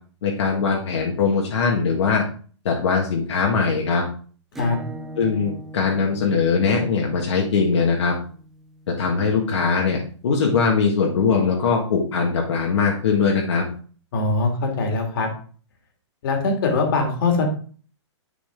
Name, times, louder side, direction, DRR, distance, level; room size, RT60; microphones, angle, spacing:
voice 1, 0.2-2.2 2.6-4.0 5.2-8.1 8.9-13.6, left 5 dB, 70° left, -1 dB, 1.6 m, -21 dB
Acoustic guitar / Strum, 4.5-9.8, equal, ahead, 0.3 m, -41 dB
voice 2, 14.1-15.3 16.2-17.5, left 3 dB, 45° left, 2 dB, 2.1 m, -22 dB
10.0 x 4.0 x 3.7 m, 0.42 s
hypercardioid pair, 170°, 15 cm